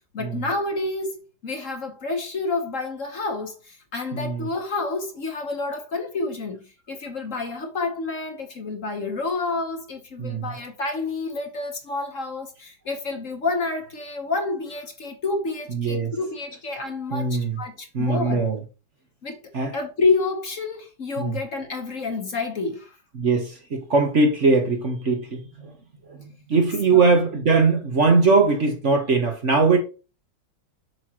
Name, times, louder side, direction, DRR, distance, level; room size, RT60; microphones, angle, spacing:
voice 1, 0.1-18.4 19.2-19.4 19.7-23.0 26.9-27.1, left 3 dB, 45° left, 1.5 m, -29 dB
voice 2, 4.1-4.5 10.2-10.6 15.7-16.1 17.1-17.6 17.9-18.6 19.5-19.8 21.2-21.4 23.1-25.7 26.1-29.8, right 4 dB, 45° right, 1.3 m, -21 dB
7.5 x 6.3 x 3.0 m
omnidirectional pair, 2.0 m